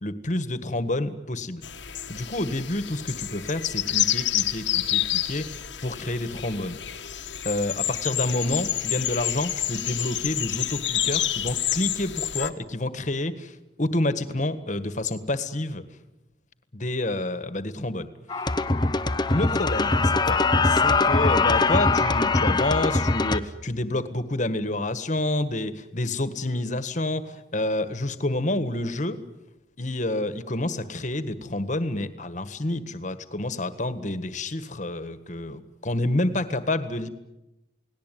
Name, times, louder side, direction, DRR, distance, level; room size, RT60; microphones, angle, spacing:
voice 1, 0.0-1.6 2.1-6.8 7.4-15.8 16.7-18.1 19.3-29.2 29.8-37.1, left 1 dB, 40° left, 11 dB, 1.7 m, -28 dB
sound 1, 1.6-12.5, left 12 dB, 85° left, 1.6 m, -29 dB
sound 2, 18.3-23.4, left 3 dB, 25° left, 0.9 m, -22 dB
29.0 x 19.0 x 9.3 m, 0.98 s
head